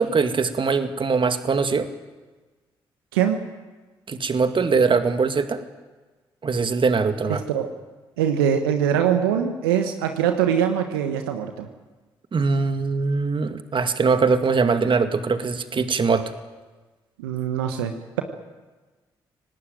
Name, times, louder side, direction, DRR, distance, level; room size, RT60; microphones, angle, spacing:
voice 1, 0.0-1.9 4.1-5.6 6.4-7.4 12.3-16.3, right 4 dB, 45° right, 8 dB, 2.3 m, -22 dB
voice 2, 7.3-7.7 8.2-11.7 17.2-18.2, right 9 dB, 85° right, 6 dB, 1.3 m, -23 dB
26.0 x 18.5 x 9.2 m, 1.3 s
hypercardioid pair, 40°, 12 cm